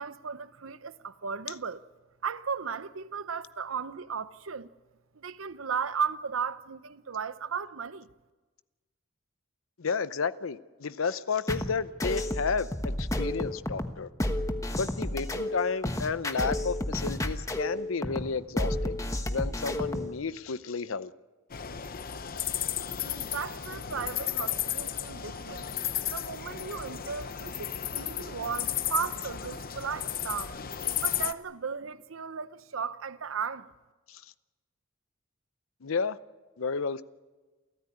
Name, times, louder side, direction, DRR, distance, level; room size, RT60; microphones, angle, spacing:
voice 1, 0.0-1.8 2.2-4.7 5.1-8.1 23.0-25.7 26.1-30.6 31.0-33.7, right 6 dB, 80° right, 0.8 m, -35 dB
voice 2, 9.8-14.1 14.7-19.0 19.3-21.1 34.1-34.2 35.8-36.2 36.6-37.0, left 5 dB, 85° left, 0.7 m, -32 dB
sound 1, 11.5-20.1, left 1 dB, 15° left, 1.2 m, -31 dB
sound 2, 21.5-31.3, left 10 dB, 45° left, 0.8 m, -34 dB
28.5 x 14.5 x 9.9 m
head